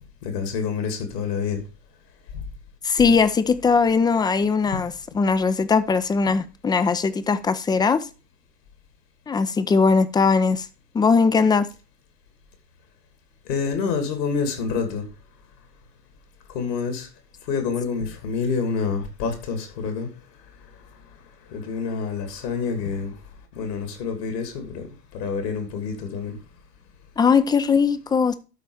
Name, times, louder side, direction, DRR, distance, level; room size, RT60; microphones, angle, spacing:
voice 1, 0.2-1.6 2.3-2.4 4.7-4.9 13.5-15.0 16.5-17.1 17.5-20.1 21.5-23.1 23.6-24.9 25.1-26.4, left 5 dB, 75° left, 2.8 m, -27 dB
voice 2, 2.8-8.1 9.3-10.7 10.9-11.7 27.2-28.3, left 5 dB, 10° left, 0.4 m, -20 dB
12.0 x 4.4 x 4.9 m
hypercardioid pair, 85°, 49 cm